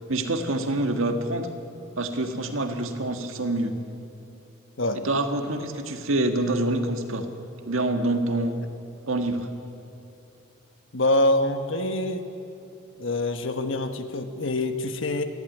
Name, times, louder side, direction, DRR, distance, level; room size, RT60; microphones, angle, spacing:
voice 1, 0.1-1.5 1.9-3.7 4.9-7.2 7.6-8.6 9.0-9.5, right 2 dB, 75° right, 6 dB, 1.6 m, -26 dB
voice 2, 10.9-12.2 13.0-15.2, left 1 dB, 65° left, 7 dB, 1.3 m, -25 dB
20.0 x 15.0 x 9.2 m, 2.8 s
head